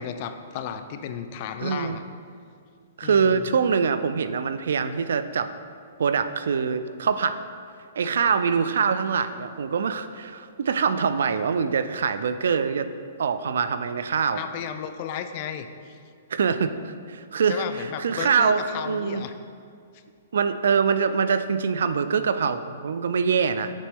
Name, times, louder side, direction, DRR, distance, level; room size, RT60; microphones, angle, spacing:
voice 1, 0.0-2.0 3.0-3.5 14.4-16.0 17.5-19.3, left 8 dB, 40° left, 9 dB, 0.3 m, -34 dB
voice 2, 1.6-2.0 3.0-5.5 6.0-7.4 8.0-12.9 13.2-14.4 16.3-19.2 20.3-23.7, right 6 dB, 75° right, 11 dB, 0.3 m, -24 dB
7.3 x 4.1 x 3.5 m, 2.3 s
hypercardioid pair, 155°, 0 cm